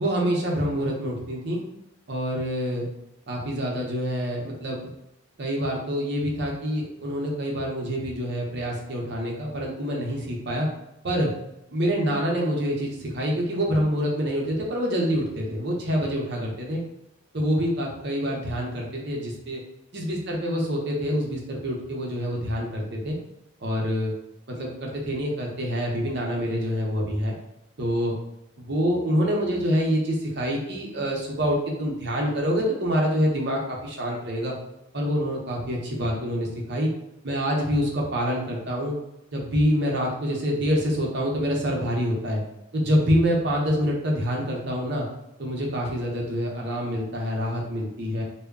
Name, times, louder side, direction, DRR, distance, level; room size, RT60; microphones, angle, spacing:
voice 1, 0.0-1.6 2.1-2.9 3.3-4.8 5.4-10.7 11.0-11.3 11.7-16.8 17.3-19.6 19.9-23.2 23.6-24.1 24.5-27.3 27.8-28.1 28.6-34.5 34.9-36.9 37.2-39.0 39.3-42.4 42.7-45.1 45.4-48.2, equal, 55° right, -1 dB, 0.6 m, -26 dB
2.2 x 2.1 x 3.5 m, 0.87 s
head